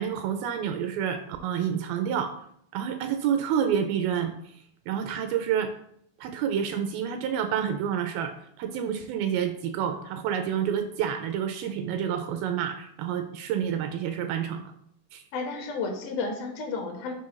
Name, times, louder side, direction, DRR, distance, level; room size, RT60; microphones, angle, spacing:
voice 1, 0.0-2.3 2.7-4.5 4.9-5.7 6.2-14.7 15.1-15.2, right 8 dB, 80° right, 7 dB, 2.2 m, -29 dB
voice 2, 15.3-17.1, left 4 dB, 75° left, 3 dB, 2.6 m, -32 dB
7.4 x 5.4 x 3.1 m, 0.69 s
omnidirectional pair, 4.5 m